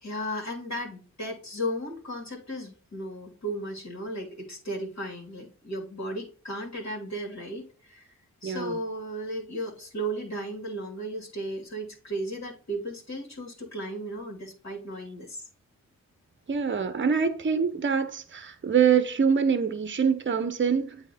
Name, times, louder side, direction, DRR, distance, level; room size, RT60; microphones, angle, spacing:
voice 1, 0.0-8.1 8.4-15.5, right 1 dB, 50° left, 2.3 m, -35 dB
voice 2, 8.4-8.8 16.5-21.0, right 6 dB, 35° right, 0.8 m, -25 dB
8.2 x 2.9 x 4.2 m
supercardioid pair, 45°, 35 cm